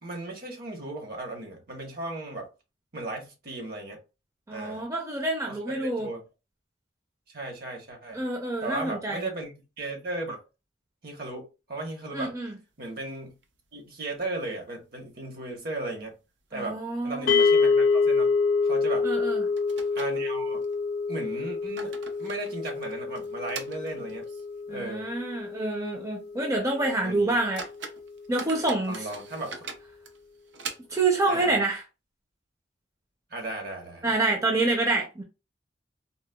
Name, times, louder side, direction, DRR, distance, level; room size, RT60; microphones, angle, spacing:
voice 1, 0.0-2.5 2.9-4.0 4.5-4.8 5.5-6.2 7.3-8.2 8.6-10.4 11.0-12.3 12.8-13.3 13.7-16.2 16.5-18.3 18.6-19.1 19.9-20.6 21.1-24.3 24.7-25.1 27.0-27.4 28.9-29.6 31.3-31.5 33.3-34.1, right 2 dB, 55° right, 1.0 m, -36 dB
voice 2, 4.5-6.1 8.1-9.3 12.1-12.6 16.5-17.4 19.0-19.4 24.7-27.6 28.3-29.1 30.9-31.8 34.0-35.2, right 2 dB, 15° right, 0.5 m, -27 dB
sound 1, 12.8-13.8 14.1-14.2 14.6-14.7 15.3-15.8 16.1-16.2 16.8-17.0 17.3-17.5 18.8-18.9 19.6-20.8 21.4-24.6 24.9-25.0 25.6-25.7 26.1-26.3 26.8-26.9 27.3-31.2, right 4 dB, 75° right, 0.5 m, -43 dB
sound 2, 17.3-27.6, left 4 dB, 55° left, 0.4 m, -27 dB
3.8 x 2.1 x 2.2 m
head